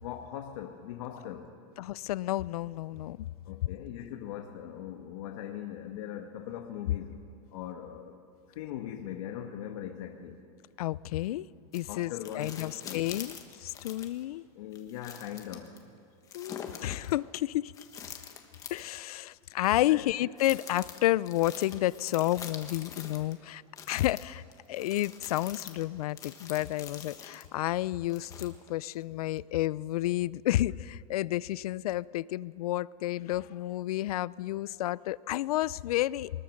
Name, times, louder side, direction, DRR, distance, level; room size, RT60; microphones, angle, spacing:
voice 1, 0.0-1.6 3.4-7.2 7.5-8.1 8.5-10.4 11.9-13.1 14.5-15.7 19.9-20.1, left 10 dB, 60° left, 1.5 m, -40 dB
voice 2, 1.8-3.3 10.8-11.5 11.7-14.4 16.3-17.7 18.7-23.6 23.9-24.4 24.7-36.3, left 15 dB, 85° left, 0.5 m, -31 dB
sound 1, 11.7-14.2 14.7-15.8 16.3-17.1 17.7-19.0 19.6-19.8 20.4-23.3 23.8-27.5 28.1-28.8 29.4-29.5, left 7 dB, 20° left, 1.3 m, -45 dB
23.5 x 20.5 x 6.5 m
supercardioid pair, 175°, 19 cm